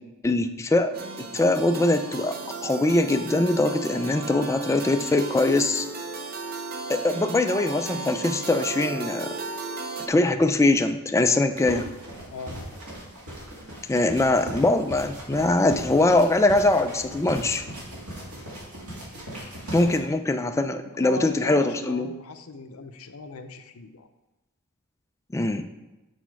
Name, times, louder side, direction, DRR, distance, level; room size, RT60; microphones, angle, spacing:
voice 1, 0.2-0.9 1.3-5.9 6.9-9.4 10.1-11.9 13.9-17.6 19.7-22.1 25.3-25.6, left 2 dB, 15° left, 7 dB, 0.3 m, -22 dB
sound 1, 0.9-10.1, right 3 dB, 45° right, 0.7 m, -35 dB
sound 2, 11.5-20.0, right 1 dB, 90° right, 2.2 m, -39 dB
voice 2, 12.3-12.7 19.8-20.1 20.8-24.1, left 3 dB, 70° left, 8 dB, 0.6 m, -38 dB
8.3 x 4.1 x 4.6 m, 1.1 s
head